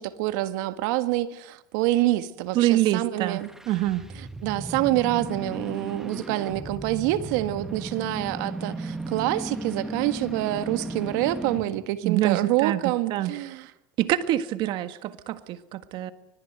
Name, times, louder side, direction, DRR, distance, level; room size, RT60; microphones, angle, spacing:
voice 1, 0.0-3.5 4.4-13.7, right 16 dB, 70° right, 1.6 m, -26 dB
voice 2, 2.5-3.4 3.7-4.0 12.0-13.3 14.0-16.1, right 14 dB, 50° right, 1.6 m, -25 dB
sound 1, 3.2-11.8, right 2 dB, 5° right, 1.6 m, -35 dB
25.0 x 19.5 x 8.0 m
supercardioid pair, 130°, 11 cm